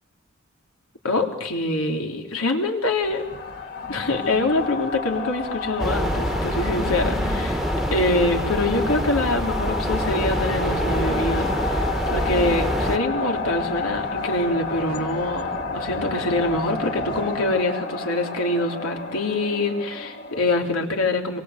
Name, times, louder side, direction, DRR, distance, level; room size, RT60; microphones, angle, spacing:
voice 1, 1.0-3.2 3.9-7.6 7.9-21.4, left 2 dB, 90° left, 2 dB, 3.7 m, -25 dB
sound 1, 3.0-20.8, left 3 dB, 50° left, 3.8 m, -30 dB
sound 2, 5.8-13.0, equal, ahead, 1.4 m, -26 dB
27.0 x 23.5 x 8.2 m, 0.91 s
head